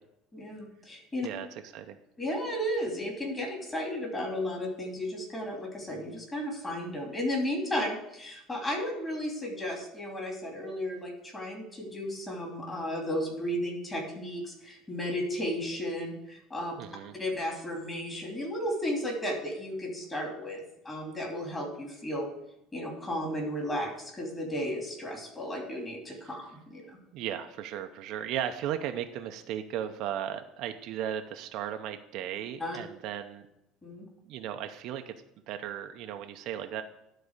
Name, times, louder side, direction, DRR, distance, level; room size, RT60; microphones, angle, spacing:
voice 1, 0.3-1.3 2.2-16.8 17.2-22.3 22.7-27.0 32.6-32.8 33.8-34.1, equal, 15° left, 0 dB, 2.9 m, -34 dB
voice 2, 16.8-17.1 26.3-26.4 27.1-33.5 34.3-35.1 35.5-36.8, right 10 dB, 60° right, 6 dB, 0.7 m, -36 dB
12.0 x 4.2 x 6.5 m, 0.82 s
cardioid pair, 135°, 0 cm